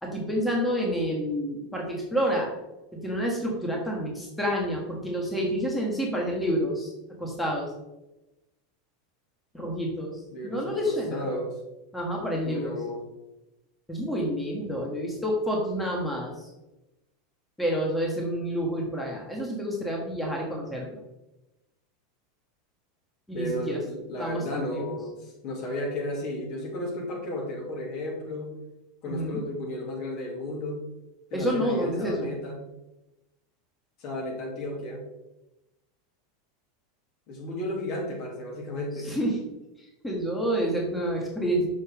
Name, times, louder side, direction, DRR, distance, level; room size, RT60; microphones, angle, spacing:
voice 1, 0.0-2.5 3.0-6.9 7.2-7.7 9.5-11.3 11.9-12.7 13.9-16.3 17.6-21.0 23.3-23.8 24.2-25.0 29.1-29.4 31.3-32.3 39.0-39.4 40.0-41.7, equal, 10° left, -2 dB, 1.7 m, -29 dB
voice 2, 10.3-11.5 12.4-13.0 23.3-28.5 29.0-30.8 31.3-32.6 34.0-35.0 37.3-39.1, left 1 dB, 50° left, -1 dB, 2.3 m, -33 dB
6.7 x 5.6 x 3.6 m, 0.97 s
hypercardioid pair, 85°, 0 cm